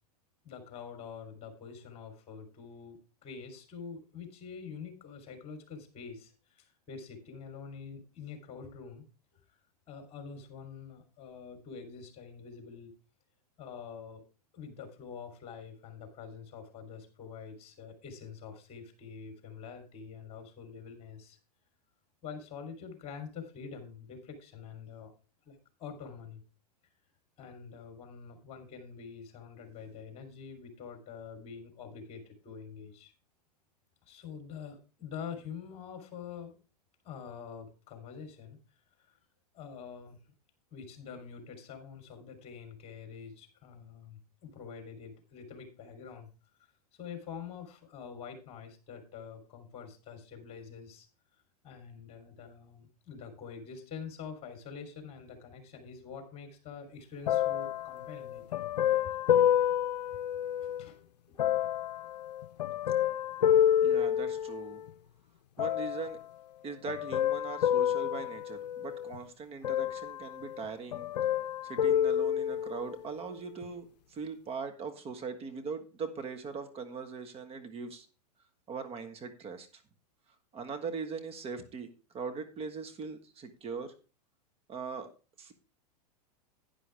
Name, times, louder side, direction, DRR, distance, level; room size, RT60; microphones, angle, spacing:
voice 1, 0.4-9.1 9.3-9.6 9.9-12.9 13.6-14.2 14.5-21.4 22.2-25.1 25.4-26.4 27.4-33.1 34.1-36.6 37.0-38.6 39.0-39.2 39.5-40.2 40.7-46.3 46.6-51.1 51.6-58.7 59.4-59.5 60.6-61.5, left 6 dB, 30° left, 6 dB, 3.4 m, -46 dB
sound 1, 57.3-60.9 61.4-64.9 65.6-66.2 66.9-69.2 69.6-70.7 70.9-73.0 73.6-73.7, left 10 dB, 85° left, 0.5 m, -29 dB
voice 2, 63.8-64.8 65.6-66.2 66.6-71.1 71.6-78.1 78.7-79.8 80.5-81.9 82.1-83.9 84.7-85.1 85.4-85.6, right 5 dB, 30° right, 7 dB, 1.5 m, -40 dB
11.0 x 9.8 x 3.4 m, 0.32 s
hypercardioid pair, 115°, 20 cm